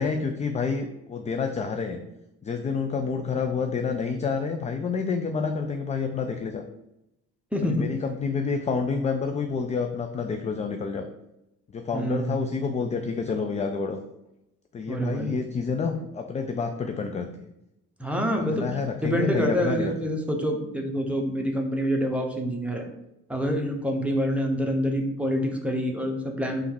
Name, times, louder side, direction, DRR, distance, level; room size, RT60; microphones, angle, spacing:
voice 1, 0.0-2.0 2.4-6.6 7.6-11.1 11.7-14.0 14.7-17.5 18.5-19.9, left 5 dB, 20° left, 5 dB, 0.3 m, -28 dB
voice 2, 7.5-7.9 11.9-12.4 14.9-15.3 18.0-22.9 23.3-26.6, equal, 5° right, 1 dB, 1.0 m, -27 dB
3.4 x 3.1 x 4.5 m, 0.87 s
hypercardioid pair, 45°, 46 cm